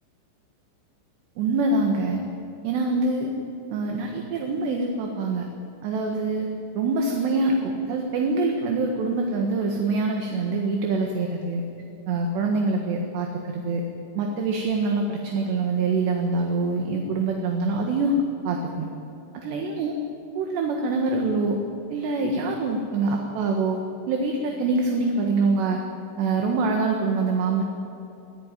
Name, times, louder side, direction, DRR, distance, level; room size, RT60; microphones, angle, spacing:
voice 1, 1.4-2.2 2.6-3.3 3.7-5.5 5.8-6.5 6.8-11.6 12.1-13.8 14.2-18.2 18.5-18.9 19.3-19.9 20.4-21.6 21.9-23.8 24.1-25.8 26.2-27.6, right 3 dB, 70° right, 2 dB, 3.6 m, -25 dB
25.0 x 15.5 x 9.2 m, 2.9 s
omnidirectional pair, 5.4 m